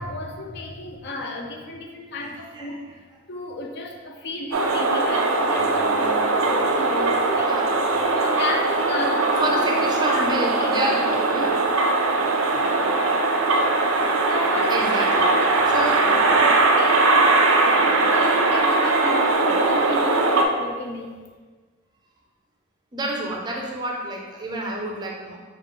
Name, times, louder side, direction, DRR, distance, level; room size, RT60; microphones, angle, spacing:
voice 1, 0.0-2.8 3.3-7.5 8.1-10.7 11.0-11.6 12.7-12.9 13.9-17.2 17.6-21.1, left 2 dB, 55° left, 3 dB, 0.5 m, -33 dB
voice 2, 2.2-2.8 7.4-8.1 9.4-11.6 14.7-15.3 15.7-16.2 22.9-25.4, right 1 dB, 20° right, -1 dB, 0.5 m, -29 dB
sound 1, 4.5-20.5, right 3 dB, 75° right, 0.4 m, -20 dB
5.0 x 2.4 x 3.6 m, 1.4 s
head